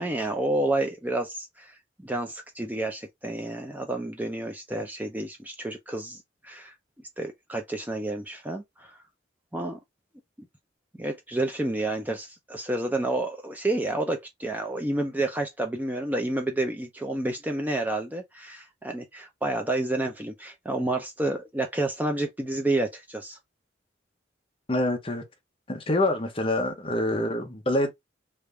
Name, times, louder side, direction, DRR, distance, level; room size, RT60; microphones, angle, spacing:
voice 1, 0.0-1.8 2.0-6.7 7.2-8.9 9.5-9.8 11.0-23.4, right 2 dB, 10° right, 0.5 m, -30 dB
voice 2, 24.7-25.2 25.7-27.9, left 1 dB, 30° left, 0.7 m, -26 dB
3.3 x 2.6 x 3.2 m
head